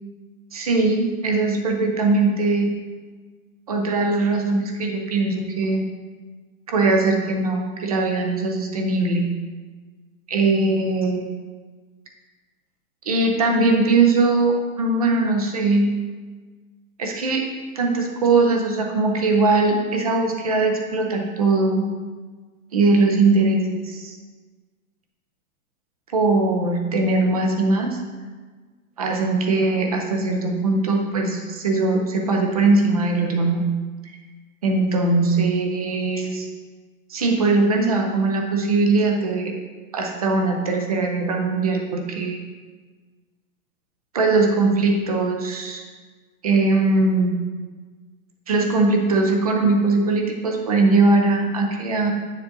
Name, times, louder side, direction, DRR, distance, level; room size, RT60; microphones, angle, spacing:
voice 1, 0.5-2.7 3.7-5.8 6.7-9.3 10.3-11.2 13.1-15.9 17.0-17.5 17.8-21.9 22.7-24.1 26.1-28.0 29.0-33.6 34.6-36.5 37.1-39.5 39.9-42.4 44.1-45.8 46.4-47.4 48.5-52.1, right 3 dB, 25° right, 3 dB, 0.5 m, -20 dB
8.6 x 7.2 x 2.6 m, 1.4 s
hypercardioid pair, 175°, 44 cm